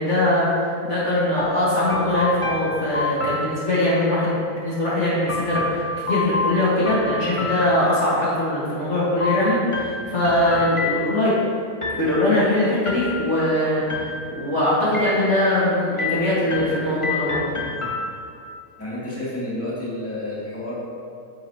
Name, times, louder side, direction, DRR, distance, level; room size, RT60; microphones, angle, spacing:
voice 1, 0.0-11.3 12.0-17.4, left 1 dB, 45° left, -8 dB, 1.8 m, -21 dB
sound 1, 1.4-4.1 5.3-8.3 9.2-11.4 11.8-12.4 12.9-13.5 13.9-14.5 14.9-15.6 16.0-18.5, left 2 dB, 25° left, 0.8 m, -29 dB
voice 2, 18.8-20.8, left 1 dB, 10° left, -8 dB, 2.0 m, -30 dB
9.9 x 7.7 x 2.8 m, 2.4 s
omnidirectional pair, 1.7 m